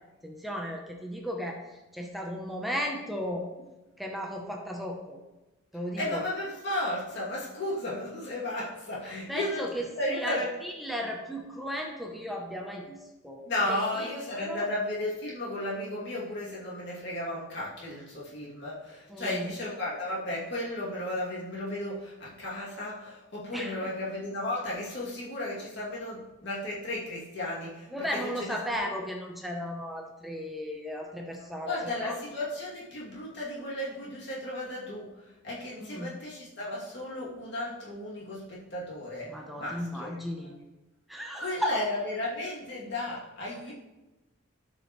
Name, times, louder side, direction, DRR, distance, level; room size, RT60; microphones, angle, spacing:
voice 1, 0.2-3.5 4.0-5.2 5.7-6.2 9.3-14.1 14.4-14.7 19.1-19.5 23.5-23.9 27.9-32.1 35.8-36.1 39.3-40.5 41.1-41.7, equal, ahead, 0 dB, 0.8 m, -35 dB
voice 2, 6.0-9.7 10.0-10.5 13.5-28.6 31.7-40.1 41.4-43.7, left 1 dB, 60° left, -6 dB, 2.6 m, -34 dB
12.5 x 5.2 x 3.1 m, 1.0 s
head